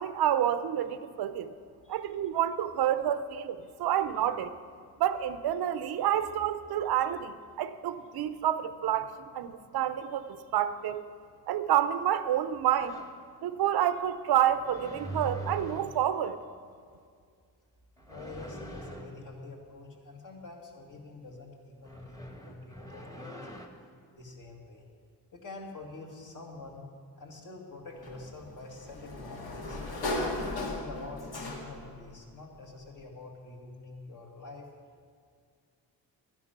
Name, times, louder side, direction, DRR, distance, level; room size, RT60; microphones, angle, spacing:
voice 1, 0.0-1.5 1.9-4.5 5.0-11.0 11.5-13.0 13.4-16.4, right 10 dB, 70° right, 12 dB, 0.7 m, -29 dB
voice 2, 1.8-2.2 18.1-23.6 24.1-24.8 25.3-26.9 27.2-29.8 30.2-34.7, left 2 dB, 50° left, 0 dB, 2.1 m, -46 dB
sound 1, 12.8-13.2 14.5-16.1 18.0-19.2 21.8-23.7, right 2 dB, 10° left, 1.2 m, -42 dB
Sliding door, 28.0-32.0, left 2 dB, 70° left, 2.0 m, -36 dB
11.5 x 10.5 x 5.9 m, 2.1 s
cardioid pair, 110°, 39 cm